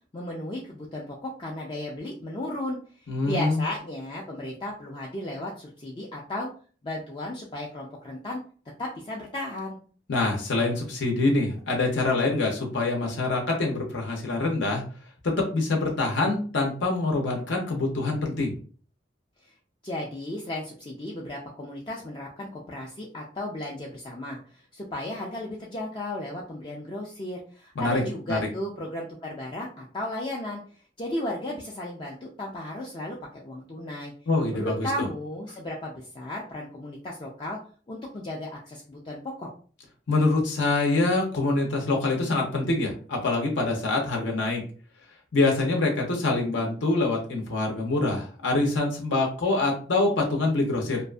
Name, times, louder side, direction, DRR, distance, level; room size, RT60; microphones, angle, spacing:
voice 1, 0.1-2.8 3.2-6.5 6.8-8.4 8.8-9.8 19.8-30.6 31.0-34.1 34.5-37.6 37.9-39.5, left 1 dB, 25° left, -3 dB, 0.3 m, -34 dB
voice 2, 3.1-3.6 10.1-14.8 15.2-18.5 27.8-28.0 28.3-28.4 34.3-34.8 40.1-44.6 45.3-51.0, left 2 dB, 75° left, 0 dB, 0.6 m, -25 dB
2.5 x 2.4 x 2.2 m, 0.41 s
head